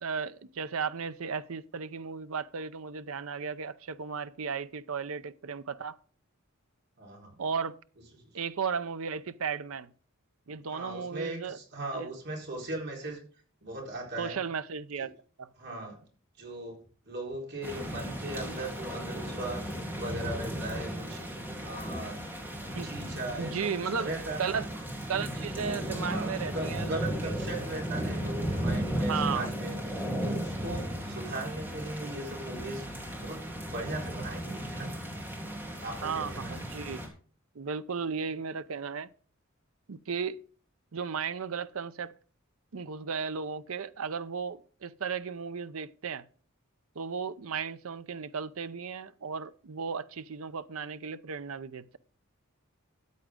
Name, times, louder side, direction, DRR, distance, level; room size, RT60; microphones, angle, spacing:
voice 1, 0.0-6.0 7.4-7.8 8.3-9.9 10.5-11.6 11.9-12.1 14.2-15.1 15.4-15.5 22.8-22.9 23.4-24.1 24.4-24.7 25.1-27.3 28.9-29.5 36.0-37.0 37.6-39.1 39.9-40.4 40.9-42.1 42.7-46.2 47.0-52.0, right 6 dB, 70° right, 0.6 m, -35 dB
voice 2, 7.0-7.4 8.2-8.3 10.7-13.2 13.6-14.4 15.6-16.0 16.4-16.8 17.1-21.2 21.6-22.2 22.8-23.7 24.0-24.7 26.0-34.9 35.8-36.6, right 2 dB, 50° right, 4.2 m, -38 dB
sound 1, 17.6-37.1, equal, 10° right, 3.2 m, -35 dB
14.0 x 9.1 x 3.7 m
head